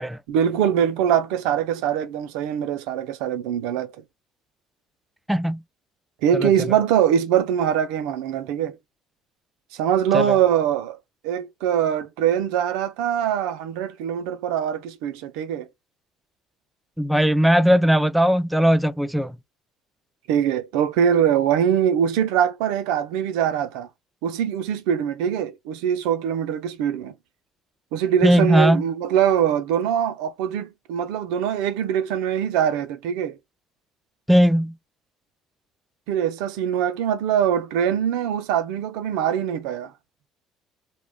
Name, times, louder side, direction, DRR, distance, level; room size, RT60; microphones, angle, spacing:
voice 1, 0.3-3.9 6.2-8.8 9.8-11.0 11.2-15.7 20.3-23.9 24.2-27.1 27.9-33.3 36.1-39.9, right 9 dB, 80° right, 0.4 m, -23 dB
voice 2, 5.3-5.6 6.3-6.5 10.1-10.4 17.0-19.4 28.2-28.8 34.3-34.7, equal, 5° right, 0.4 m, -18 dB
2.2 x 2.1 x 3.3 m
supercardioid pair, 75°, 0 cm